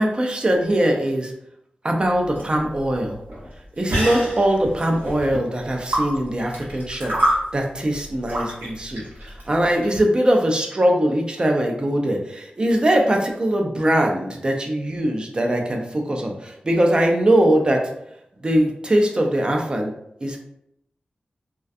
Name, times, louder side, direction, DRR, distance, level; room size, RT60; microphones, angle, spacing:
voice 1, 0.0-1.3 1.8-3.1 3.8-17.8 18.4-19.9 20.2-20.4, right 1 dB, 30° right, 2 dB, 0.4 m, -21 dB
sound 1, 2.0-10.0, right 1 dB, 85° right, 1.0 m, -28 dB
2.3 x 2.2 x 2.5 m, 0.76 s
wide cardioid pair, 115°, 3 cm